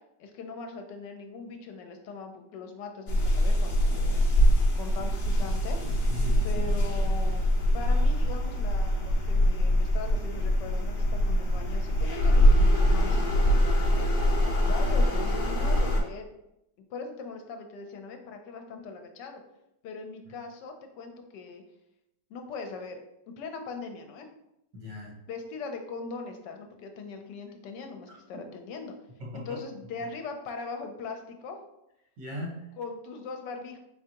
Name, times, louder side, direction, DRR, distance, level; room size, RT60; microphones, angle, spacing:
voice 1, 0.2-4.2 4.8-5.8 6.4-7.4 7.7-14.0 14.6-16.3 16.9-19.4 19.8-21.6 22.3-23.0 23.4-24.3 25.3-28.9 29.3-31.6 32.8-33.8, left 4 dB, 75° left, 5 dB, 1.2 m, -40 dB
sound 1, 3.1-16.0, equal, 60° left, 0.5 m, -23 dB
voice 2, 6.1-6.6 24.7-25.2 28.3-28.4 29.2-29.6 32.2-32.7, left 2 dB, 70° right, -2 dB, 1.8 m, -38 dB
4.6 x 3.4 x 2.8 m, 0.85 s
omnidirectional pair, 2.0 m